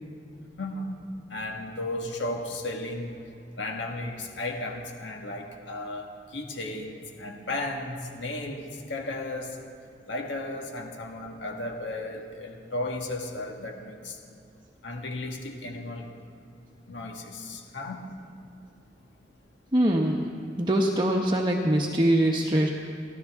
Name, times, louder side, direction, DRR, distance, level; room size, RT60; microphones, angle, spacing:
voice 1, 0.6-0.9 1.3-3.1 3.6-9.6 10.1-14.2 14.8-16.1 16.9-18.0, left 2 dB, 75° left, 2 dB, 1.7 m, -34 dB
voice 2, 19.7-20.3 20.6-22.7, right 1 dB, 25° right, -1 dB, 0.9 m, -23 dB
28.5 x 12.0 x 3.6 m, 2.5 s
head